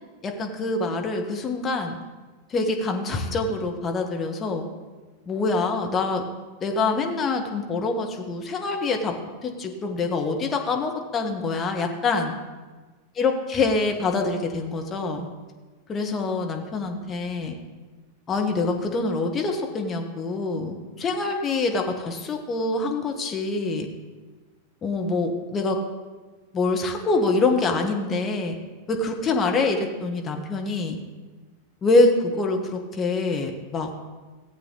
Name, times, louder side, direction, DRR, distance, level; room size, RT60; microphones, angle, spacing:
voice 1, 0.2-2.0 2.5-4.6 5.3-6.2 6.6-9.1 9.4-12.3 13.2-15.3 15.9-17.6 18.3-23.9 24.8-25.8 26.5-28.6 28.9-31.0 31.8-33.9, left 3 dB, 25° left, 3 dB, 1.5 m, -25 dB
15.5 x 8.1 x 4.0 m, 1.3 s
figure-of-eight pair, 90°, 0 cm